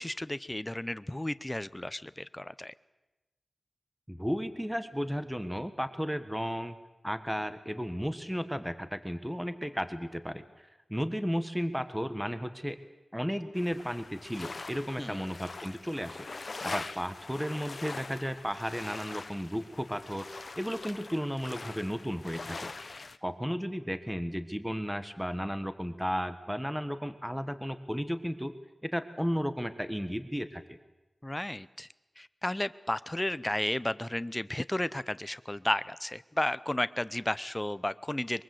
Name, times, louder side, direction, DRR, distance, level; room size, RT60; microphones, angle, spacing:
voice 1, 0.0-2.7 15.0-15.2 31.2-31.9 32.2-38.4, left 1 dB, 15° left, 15 dB, 0.8 m, -33 dB
voice 2, 4.1-6.8 7.0-10.4 10.9-12.8 13.1-20.3 20.6-22.7 23.2-28.5 28.8-30.8, equal, 5° right, 10 dB, 1.4 m, -34 dB
sound 1, 13.6-23.2, left 3 dB, 60° left, 1.0 m, -43 dB
23.0 x 23.0 x 7.9 m, 1.1 s
wide cardioid pair, 70°, 0 cm